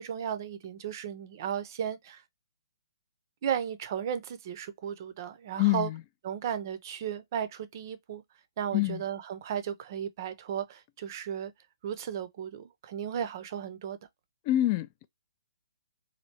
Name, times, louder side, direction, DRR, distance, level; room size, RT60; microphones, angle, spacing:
voice 1, 0.0-2.2 3.4-5.9 6.2-8.2 8.6-11.5 11.8-14.0, right 9 dB, 45° right, 0.6 m, -35 dB
voice 2, 5.6-6.0 8.7-9.0 14.5-15.1, left 15 dB, 30° left, 0.3 m, -26 dB
3.2 x 2.6 x 2.8 m
figure-of-eight pair, 135°, 3 cm